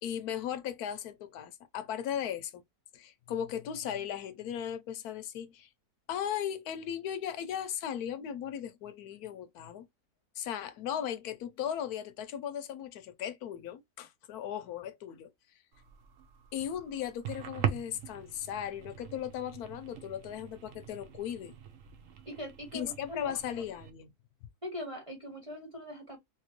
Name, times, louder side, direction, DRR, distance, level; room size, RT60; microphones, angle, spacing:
voice 1, 0.0-2.6 2.9-5.7 6.1-9.8 10.4-15.3 16.5-21.6 22.7-24.1, left 9 dB, 85° left, 1.1 m, -37 dB
sound 1, 15.7-23.9, right 9 dB, 65° right, 0.9 m, -41 dB
voice 2, 22.2-23.2 24.6-26.2, left 1 dB, 25° right, 1.0 m, -41 dB
3.0 x 2.9 x 2.9 m
omnidirectional pair, 1.6 m